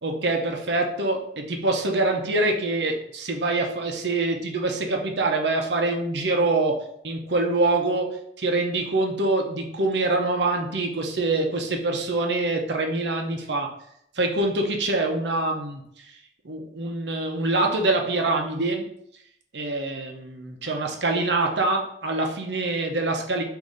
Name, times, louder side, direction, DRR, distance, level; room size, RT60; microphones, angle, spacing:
voice 1, 0.0-13.7 14.2-15.8 16.4-18.8 19.5-23.4, right 2 dB, 70° right, 2 dB, 0.8 m, -25 dB
4.0 x 2.7 x 4.9 m, 0.71 s
head